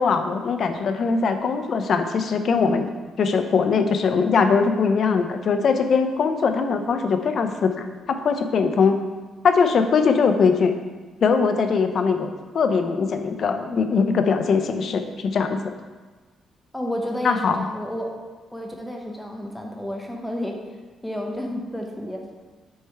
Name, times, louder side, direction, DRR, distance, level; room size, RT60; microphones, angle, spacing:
voice 1, 0.0-2.9 3.2-9.0 9.4-10.8 11.2-15.6 17.2-17.6, left 5 dB, 55° left, 7 dB, 0.5 m, -21 dB
voice 2, 16.7-18.1 18.5-20.5 21.0-22.2, equal, 5° left, 1 dB, 0.9 m, -31 dB
6.3 x 3.4 x 4.6 m, 1.4 s
cardioid pair, 90°, 0 cm